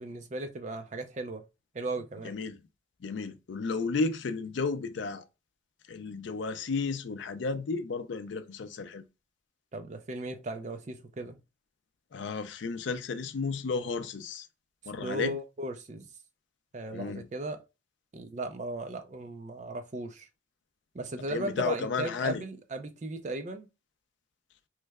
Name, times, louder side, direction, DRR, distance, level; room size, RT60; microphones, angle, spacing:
voice 1, 0.0-1.5 1.7-2.3 9.7-11.4 15.0-16.1 16.7-17.6 18.1-20.3 20.9-23.7, right 2 dB, 40° right, 0.4 m, -36 dB
voice 2, 2.2-2.6 3.0-5.2 5.9-9.0 12.1-14.5 14.9-15.4 16.9-17.3 21.3-22.4, left 4 dB, 70° left, 0.4 m, -33 dB
3.1 x 2.1 x 3.4 m
head